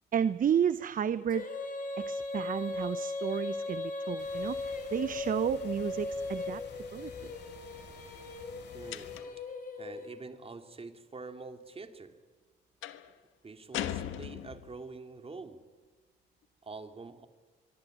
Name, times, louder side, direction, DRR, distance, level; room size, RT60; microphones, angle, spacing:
voice 1, 0.1-1.5 2.0-4.6 4.9-6.6 6.9-7.3, right 8 dB, 45° right, 15 dB, 0.7 m, -31 dB
Female singing, 1.3-10.4, left 3 dB, 45° left, 4.6 m, -38 dB
sound 1, 4.2-9.2, left 6 dB, 60° left, 4.7 m, -52 dB
voice 2, 8.7-9.2 9.8-12.2 13.4-15.6 16.6-17.3, right 3 dB, 30° right, 8 dB, 2.6 m, -46 dB
sound 2, 8.9-9.5 12.8-13.1 13.7-14.8, left 12 dB, 85° left, 1.5 m, -38 dB
24.5 x 23.0 x 9.3 m, 1.4 s
cardioid pair, 90°, 20 cm